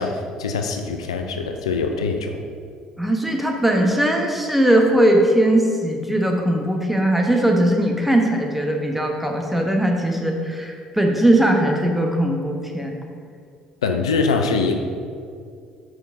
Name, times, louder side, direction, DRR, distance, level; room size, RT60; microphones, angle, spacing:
voice 1, 0.0-2.4 13.8-14.7, left 4 dB, 90° left, 5 dB, 0.4 m, -23 dB
voice 2, 3.0-12.9, right 1 dB, 5° right, 1 dB, 1.1 m, -19 dB
5.2 x 4.9 x 4.7 m, 2.2 s
hypercardioid pair, 55°, 3 cm